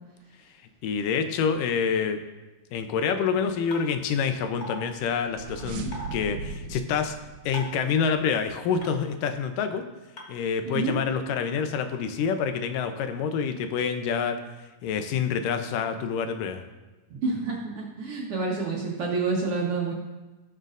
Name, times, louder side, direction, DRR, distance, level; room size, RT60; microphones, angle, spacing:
voice 1, 0.8-2.2 2.7-7.1 7.5-9.8 10.3-14.4 14.8-16.6, left 6 dB, 85° left, 7 dB, 2.3 m, -27 dB
sound 1, 3.7-3.8 4.6-4.8 5.9-6.1 7.5-7.8 8.8-8.9 10.2-10.3, left 1 dB, 50° left, 0.5 m, -36 dB
sound 2, 4.9-8.4, right 4 dB, 90° right, 2.4 m, -40 dB
voice 2, 10.7-11.0 17.1-19.9, right 4 dB, 60° right, -2 dB, 1.7 m, -28 dB
17.5 x 6.7 x 2.5 m, 1.1 s
omnidirectional pair, 3.7 m